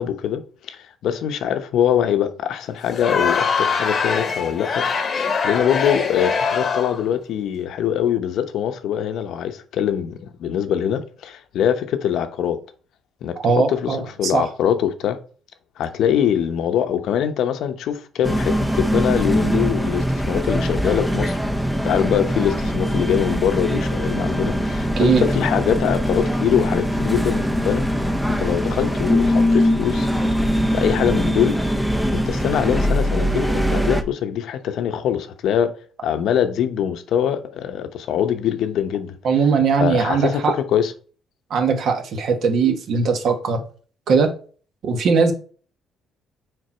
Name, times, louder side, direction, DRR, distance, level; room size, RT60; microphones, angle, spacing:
voice 1, 0.0-4.9 5.4-12.6 13.2-15.2 15.8-21.4 21.8-27.8 28.4-30.1 30.7-31.6 32.1-35.8 36.0-39.2 39.8-40.9, left 9 dB, 65° left, 0.8 m, -23 dB
Crowd, 2.9-7.1, left 5 dB, 35° left, 1.0 m, -23 dB
voice 2, 13.4-14.0 14.3-14.5 25.0-25.3 39.2-40.5 41.5-43.6 44.1-44.3 44.8-45.3, right 5 dB, 55° right, 1.2 m, -19 dB
sound 1, 18.2-34.0, equal, ahead, 0.5 m, -21 dB
6.6 x 4.4 x 4.3 m
cardioid pair, 145°, 0 cm